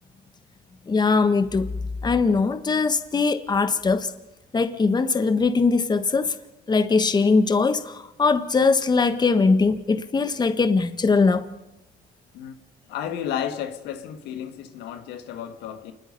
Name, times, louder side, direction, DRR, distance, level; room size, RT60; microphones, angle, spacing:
voice 1, 0.9-1.7 2.0-4.1 4.5-6.4 6.7-11.5, left 4 dB, 25° left, 1.5 m, -21 dB
voice 2, 12.9-15.9, left 9 dB, 90° left, 1.9 m, -32 dB
28.0 x 21.0 x 5.5 m
cardioid pair, 110°, 17 cm